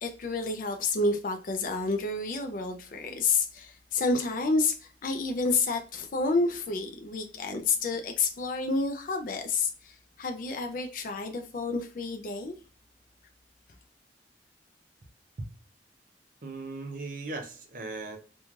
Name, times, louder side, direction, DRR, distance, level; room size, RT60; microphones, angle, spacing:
voice 1, 0.0-12.5, left 3 dB, 45° left, 0.4 m, -29 dB
voice 2, 16.4-18.2, right 3 dB, 50° right, 0.6 m, -37 dB
3.0 x 2.2 x 2.4 m
head